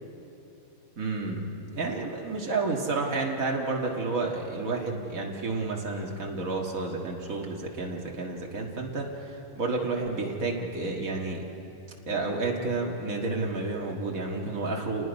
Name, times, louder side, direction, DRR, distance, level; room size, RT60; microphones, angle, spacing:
voice 1, 1.0-1.5 1.7-11.4 12.1-15.1, right 3 dB, 90° right, -1 dB, 2.2 m, -30 dB
29.0 x 19.5 x 5.3 m, 2.8 s
omnidirectional pair, 1.4 m